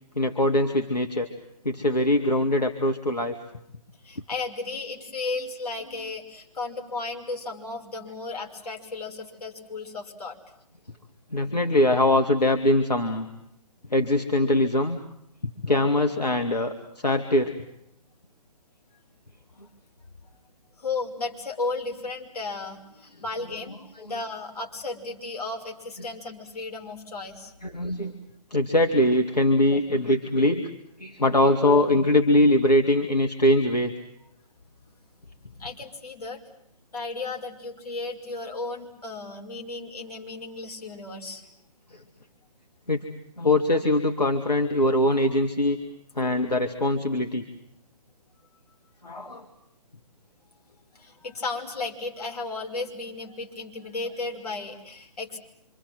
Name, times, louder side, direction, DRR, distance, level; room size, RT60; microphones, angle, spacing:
voice 1, 0.2-1.3 1.6-3.4 11.3-13.3 13.9-15.0 15.4-17.6 23.4-23.8 24.1-24.3 26.0-26.1 27.6-28.2 28.5-30.7 31.0-33.9 41.9-42.0 42.9-43.1 43.4-45.8 46.2-47.4 49.0-49.5, left 1 dB, 85° left, 3 dB, 2.3 m, -22 dB
voice 2, 4.0-10.4 20.8-23.8 24.1-27.5 35.5-36.4 36.9-41.4 50.9-55.4, left 3 dB, 70° left, 2 dB, 5.7 m, -34 dB
27.0 x 26.5 x 7.7 m, 0.76 s
figure-of-eight pair, 135°, 20 cm